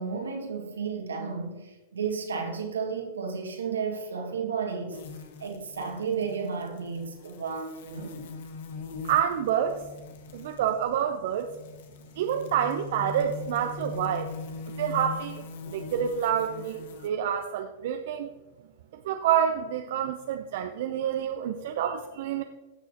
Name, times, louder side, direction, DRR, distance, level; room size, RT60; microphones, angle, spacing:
voice 1, 0.0-5.0 5.4-8.2, right 5 dB, 90° right, 1.8 m, -33 dB
sound 1, 4.9-17.1, left 5 dB, 65° left, 1.0 m, -41 dB
voice 2, 9.0-9.9 10.3-11.5 12.2-14.3 14.8-18.3 18.9-22.4, right 9 dB, 65° right, 0.6 m, -28 dB
15.0 x 6.1 x 2.9 m
hypercardioid pair, 105°, 0 cm